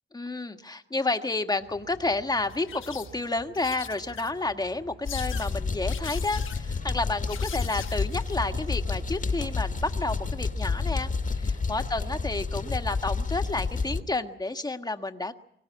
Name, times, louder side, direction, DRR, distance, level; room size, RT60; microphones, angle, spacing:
voice 1, 0.1-15.3, left 2 dB, 20° left, 7 dB, 1.6 m, -30 dB
sound 1, 1.6-14.0, right 3 dB, 50° right, 5.9 m, -48 dB
sound 2, 2.4-3.2 3.5-4.5 5.0-5.6 5.9-6.6 7.3-8.4 9.6-9.8, left 9 dB, 75° left, 1.2 m, -41 dB
sound 3, 5.0-14.0, left 4 dB, 40° left, 1.7 m, -30 dB
24.0 x 17.0 x 9.6 m, 0.73 s
cardioid pair, 105°, 20 cm